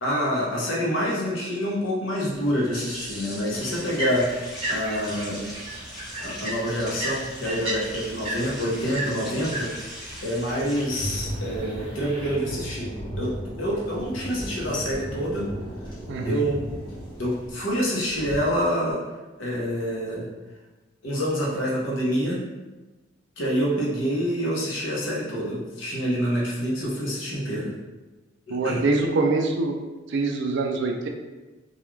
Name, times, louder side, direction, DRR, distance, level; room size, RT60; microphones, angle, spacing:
voice 1, 0.0-4.3 4.7-5.5 6.2-9.7 10.2-15.4 16.2-16.6 17.2-19.0 19.4-20.3 21.0-22.4 23.4-27.7 28.5-28.8, equal, 70° left, -4 dB, 0.8 m, -27 dB
sound 1, 2.3-18.4, equal, 25° left, 0.9 m, -38 dB
sound 2, 2.7-10.8, equal, ahead, 1.0 m, -40 dB
sound 3, 3.5-12.4, right 1 dB, 30° right, 0.7 m, -35 dB
voice 2, 16.1-16.5 28.5-29.8 30.1-31.1, right 3 dB, 65° right, 3 dB, 0.4 m, -24 dB
2.3 x 2.3 x 3.1 m, 1.2 s
head